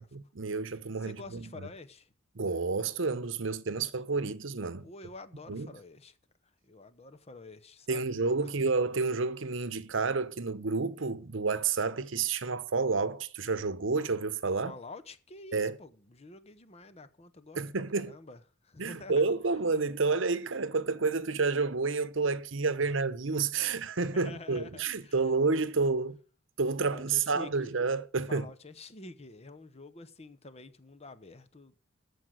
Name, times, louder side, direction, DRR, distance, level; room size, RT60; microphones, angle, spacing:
voice 1, 0.0-1.7 2.3-4.9 5.5-5.7 7.9-14.7 15.5-15.8 17.6-18.1 18.8-26.2 26.6-28.5, right 4 dB, 70° right, 0.9 m, -30 dB
voice 2, 1.0-2.1 4.8-6.2 6.6-8.5 14.6-17.6 17.9-19.3 22.8-22.9 24.1-25.2 26.8-27.7 28.3-31.7, left 2 dB, 30° left, 0.9 m, -48 dB
14.0 x 5.1 x 7.8 m
head